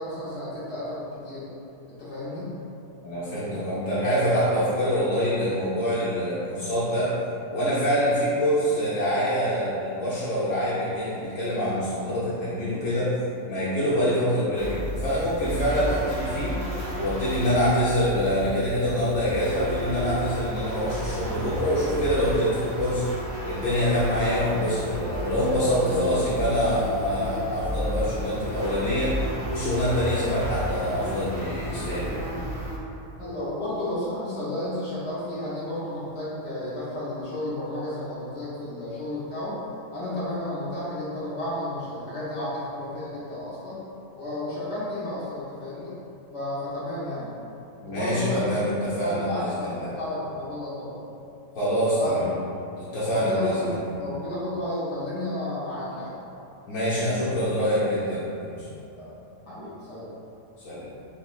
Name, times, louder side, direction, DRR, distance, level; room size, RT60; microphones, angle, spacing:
voice 1, 0.0-1.5 1.9-2.5 25.8-26.0 33.2-39.6 39.9-43.8 44.2-45.9 46.3-47.3 47.9-51.1 52.0-52.2 53.1-53.7 54.0-56.1 59.0-59.1 59.5-60.1, left 1 dB, 60° left, -10 dB, 1.1 m, -32 dB
voice 2, 3.0-7.1 7.5-13.1 13.5-16.5 17.0-23.1 23.4-29.2 29.5-32.3 47.8-49.9 51.5-52.2 52.8-53.8 56.7-58.7 60.6-60.9, equal, 85° left, -11 dB, 1.1 m, -25 dB
sound 1, 14.6-32.8, equal, 40° right, 0.5 m, -32 dB
5.6 x 2.1 x 2.3 m, 2.7 s
omnidirectional pair, 1.3 m